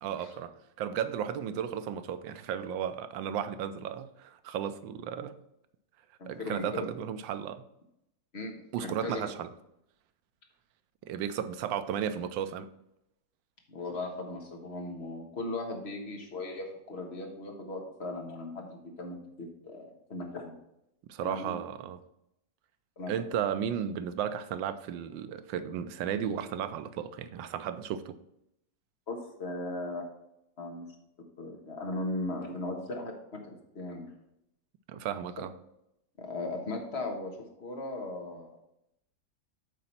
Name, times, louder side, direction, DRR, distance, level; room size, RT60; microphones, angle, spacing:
voice 1, 0.0-5.4 6.3-7.6 8.7-9.5 11.0-12.7 21.1-22.0 23.1-28.2 34.9-35.5, right 9 dB, 85° right, 1.3 m, -34 dB
voice 2, 6.2-6.8 8.3-9.3 13.7-20.5 21.2-21.6 23.0-23.1 29.1-30.0 30.6-30.8 31.4-34.1 36.2-38.6, left 2 dB, 40° left, 1.5 m, -38 dB
8.5 x 3.9 x 5.9 m
omnidirectional pair, 2.0 m